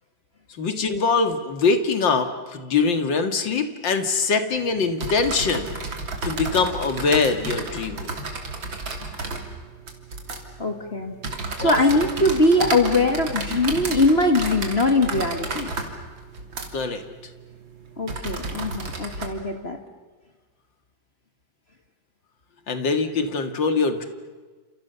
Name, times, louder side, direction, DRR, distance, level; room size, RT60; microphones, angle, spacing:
voice 1, 0.6-5.7 6.2-8.1 11.6-11.8 16.7-17.0 22.7-24.1, left 4 dB, 70° left, 8 dB, 2.7 m, -23 dB
sound 1, 4.5-19.3, right 3 dB, 75° right, 3.8 m, -33 dB
voice 2, 10.6-11.1 11.6-15.7 18.0-19.8, left 2 dB, 35° left, 6 dB, 1.9 m, -21 dB
30.0 x 28.0 x 7.0 m, 1.4 s
omnidirectional pair, 2.1 m